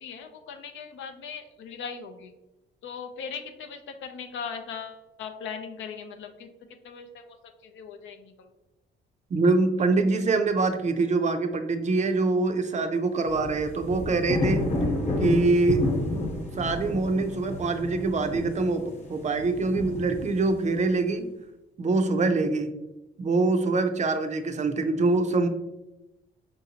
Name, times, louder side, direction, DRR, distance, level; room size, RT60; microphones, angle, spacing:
voice 1, 0.0-2.3 2.8-6.5 6.8-7.4 7.6-8.5, left 6 dB, 80° left, 6 dB, 0.5 m, -39 dB
voice 2, 9.3-14.7 15.2-15.9 16.6-21.3 21.8-22.7 23.2-25.5, right 3 dB, 35° right, 7 dB, 0.4 m, -24 dB
sound 1, 13.2-20.7, left 2 dB, 35° left, 0.9 m, -30 dB
5.0 x 2.7 x 2.8 m, 0.97 s
cardioid pair, 90°, 20 cm